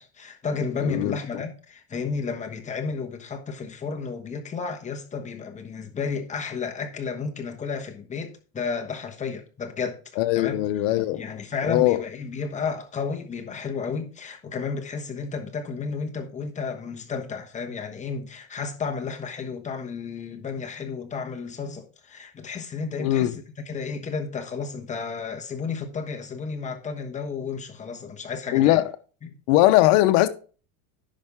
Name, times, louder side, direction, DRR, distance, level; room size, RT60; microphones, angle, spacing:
voice 1, 0.0-10.0 10.3-10.6 11.1-28.8 29.2-29.3, left 5 dB, 20° left, 1.2 m, -32 dB
voice 2, 0.8-1.1 10.2-11.2 11.7-12.0 23.0-23.4 28.5-28.9 29.5-30.3, left 15 dB, 65° left, 1.0 m, -20 dB
10.5 x 5.5 x 3.6 m
supercardioid pair, 140°, 40 cm